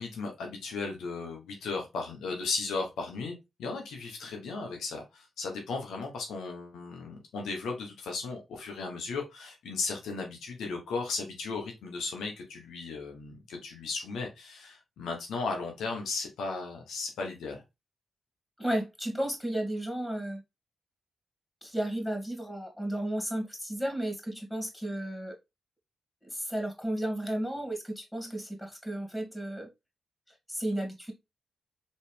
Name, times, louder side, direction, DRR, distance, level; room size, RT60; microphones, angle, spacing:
voice 1, 0.0-17.6, left 4 dB, 85° left, 1.1 m, -36 dB
voice 2, 18.6-20.4 21.6-25.3 26.2-29.7 30.5-31.1, right 1 dB, 10° left, 2.5 m, -33 dB
4.1 x 3.2 x 3.3 m
supercardioid pair, 45°, 0 cm